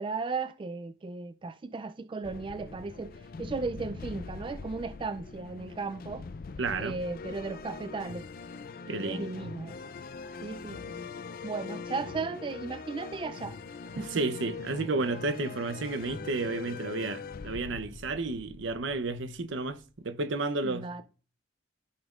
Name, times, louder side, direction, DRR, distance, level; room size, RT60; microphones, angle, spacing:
voice 1, 0.0-6.3 6.8-8.3 8.9-9.8 10.4-11.0 11.4-13.6 14.0-14.2 20.6-21.0, right 4 dB, 25° right, 0.3 m, -36 dB
sound 1, 2.2-19.9, left 4 dB, 50° left, 0.4 m, -42 dB
voice 2, 6.6-7.0 8.9-9.3 14.0-21.0, right 3 dB, 85° right, 0.7 m, -32 dB
14.0 x 5.2 x 2.4 m
head